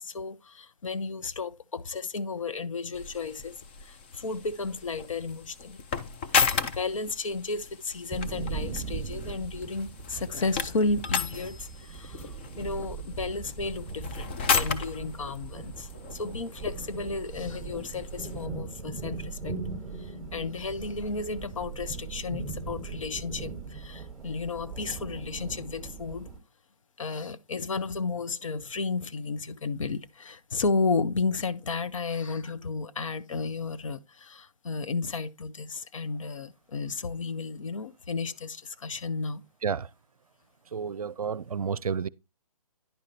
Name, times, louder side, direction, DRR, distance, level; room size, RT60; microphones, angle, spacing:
voice 1, 0.0-3.5 3.8-5.8 6.7-19.6 20.0-26.3 27.0-39.4, left 4 dB, 55° left, 0.9 m, -33 dB
sound 1, 2.9-18.5, left 6 dB, 15° left, 0.4 m, -34 dB
sound 2, 8.1-26.4, right 4 dB, ahead, 1.4 m, -39 dB
voice 2, 40.7-42.1, right 6 dB, 70° right, 0.5 m, -30 dB
10.5 x 5.0 x 4.2 m
figure-of-eight pair, 145°, 19 cm